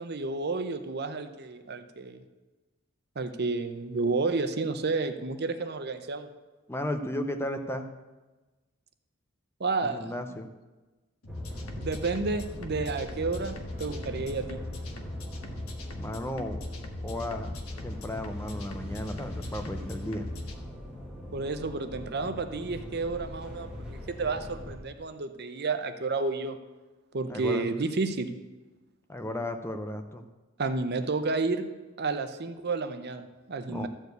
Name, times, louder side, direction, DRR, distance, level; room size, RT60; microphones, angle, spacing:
voice 1, 0.0-2.2 3.2-6.3 9.6-10.1 11.7-14.6 21.3-26.6 27.1-28.3 30.6-31.7 32.0-33.9, right 3 dB, 50° right, 9 dB, 0.7 m, -31 dB
voice 2, 6.7-7.9 9.8-10.5 16.0-16.6 17.0-20.3 27.3-27.7 29.1-30.3 33.7-33.9, left 1 dB, 10° left, 7 dB, 0.6 m, -34 dB
sound 1, 11.2-20.5, left 1 dB, 90° left, 1.2 m, -39 dB
sound 2, 11.3-24.8, left 1 dB, 5° right, 1.7 m, -42 dB
13.5 x 4.6 x 8.0 m, 1.2 s
head